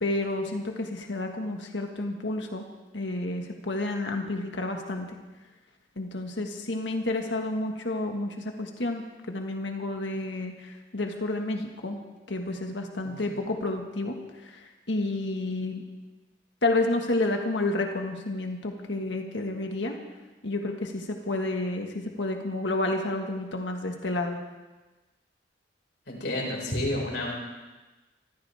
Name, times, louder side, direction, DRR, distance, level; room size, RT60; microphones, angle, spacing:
voice 1, 0.0-2.6 2.9-5.1 6.0-12.0 12.3-15.8 16.6-20.0 20.4-24.4, left 2 dB, 85° left, 3 dB, 1.7 m, -30 dB
voice 2, 13.0-13.4 26.1-27.3, left 1 dB, 70° left, -2 dB, 5.2 m, -31 dB
24.5 x 15.0 x 3.5 m, 1.2 s
head